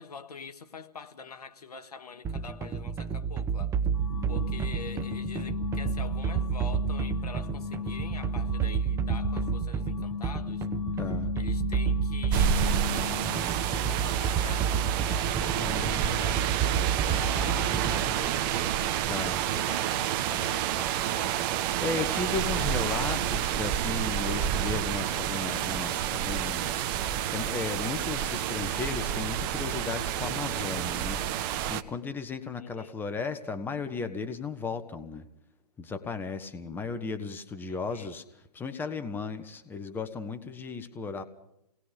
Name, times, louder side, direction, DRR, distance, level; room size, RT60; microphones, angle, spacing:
voice 1, 0.0-3.8 4.3-10.7 11.1-14.7 15.1-18.8 19.5-21.4 22.4-22.9 32.6-33.0 37.7-38.2, left 5 dB, 70° left, 1.8 m, -45 dB
sound 1, 2.2-18.2, right 7 dB, 15° right, 0.9 m, -30 dB
sound 2, 3.9-13.6, left 6 dB, 55° left, 0.8 m, -36 dB
voice 2, 4.1-4.7 11.0-11.3 15.6-16.1 19.1-19.4 21.8-35.2 35.8-41.2, left 4 dB, 10° left, 1.3 m, -35 dB
sound 3, 12.3-31.8, right 10 dB, 35° right, 1.2 m, -29 dB
28.0 x 19.5 x 5.2 m
figure-of-eight pair, 125°, 20 cm